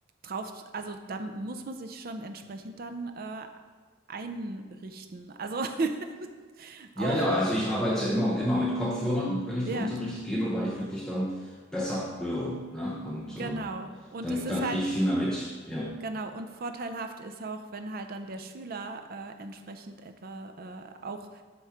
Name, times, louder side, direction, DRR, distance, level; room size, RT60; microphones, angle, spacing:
voice 1, 0.2-3.5 4.1-6.3 6.6-7.2 9.7-9.9 13.4-14.8 16.0-21.4, right 3 dB, 50° right, 6 dB, 0.5 m, -37 dB
voice 2, 7.0-13.7 14.2-16.0, equal, 5° left, -5 dB, 0.6 m, -29 dB
8.1 x 3.1 x 5.7 m, 1.5 s
head